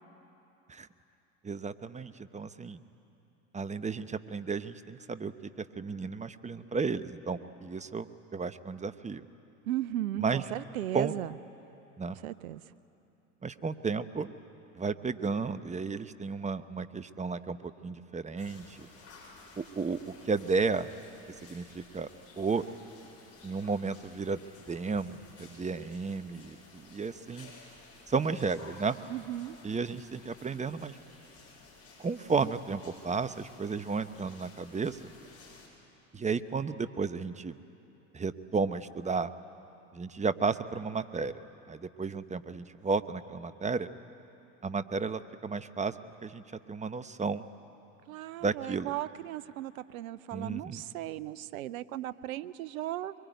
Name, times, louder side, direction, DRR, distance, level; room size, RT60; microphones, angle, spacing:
voice 1, 1.4-2.8 3.5-5.3 5.6-9.2 10.2-10.4 10.9-11.1 12.0-12.2 13.4-14.3 14.8-18.9 19.6-20.0 20.2-20.9 21.4-22.1 22.4-22.6 23.4-24.4 24.7-27.5 28.1-29.0 29.6-31.0 32.0-35.1 36.1-37.6 38.1-39.3 39.9-41.4 41.7-43.9 44.6-45.9 46.2-46.4 46.7-47.4 48.4-48.9 50.3-50.8, right 4 dB, 15° right, 13 dB, 0.9 m, -33 dB
voice 2, 9.7-11.3 12.1-12.6 29.1-29.6 48.1-53.1, right 13 dB, 80° right, 17 dB, 0.7 m, -36 dB
sound 1, 18.4-35.7, left 3 dB, 35° left, 8.0 m, -54 dB
24.0 x 22.5 x 9.2 m, 2.9 s
hypercardioid pair, 80°, 41 cm